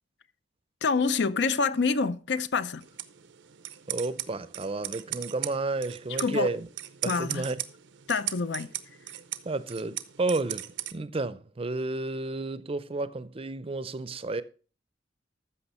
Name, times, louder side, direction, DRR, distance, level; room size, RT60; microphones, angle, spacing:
voice 1, 0.8-2.8 6.2-6.5 7.1-7.5 8.1-8.7, left 4 dB, 65° left, 0.5 m, -27 dB
sound 1, 2.8-10.9, right 14 dB, 85° right, 0.7 m, -38 dB
voice 2, 3.9-6.7 7.0-7.6 9.4-14.4, right 2 dB, 30° right, 0.5 m, -31 dB
14.0 x 6.1 x 4.3 m
head